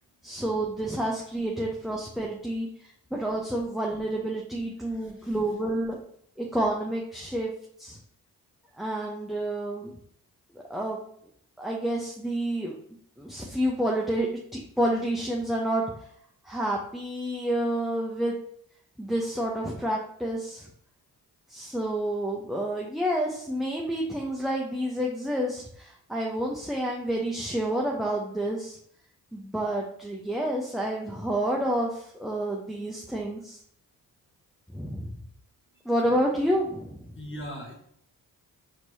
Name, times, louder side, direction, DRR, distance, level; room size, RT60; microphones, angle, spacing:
voice 1, 0.2-6.0 6.4-7.5 7.8-8.0 8.8-9.9 10.7-11.0 11.6-12.7 13.2-15.8 16.4-18.4 19.0-20.7 21.5-28.8 29.3-33.6 34.7-35.2 35.8-37.1, right 1 dB, ahead, -2 dB, 0.7 m, -29 dB
voice 2, 4.8-5.4 37.1-37.7, equal, 30° left, 0 dB, 1.1 m, -40 dB
4.4 x 3.1 x 2.7 m, 0.66 s
supercardioid pair, 45°, 40 cm